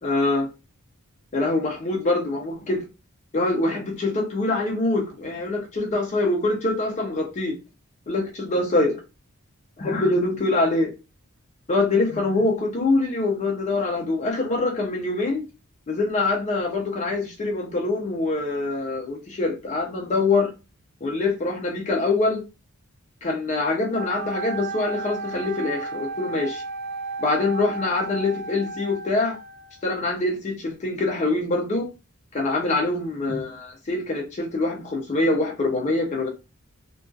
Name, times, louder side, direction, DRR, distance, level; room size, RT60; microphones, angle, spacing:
voice 1, 0.0-0.5 1.3-2.8 3.3-7.6 8.1-9.0 9.8-10.9 11.7-15.4 15.9-20.5 21.0-22.4 23.2-26.6 27.2-29.4 29.8-31.9 32.3-36.3, left 2 dB, 30° left, 0.4 m, -24 dB
Wind instrument woodwind instrument, 23.9-29.8, right 3 dB, 45° right, 0.4 m, -34 dB
2.6 x 2.2 x 2.3 m
head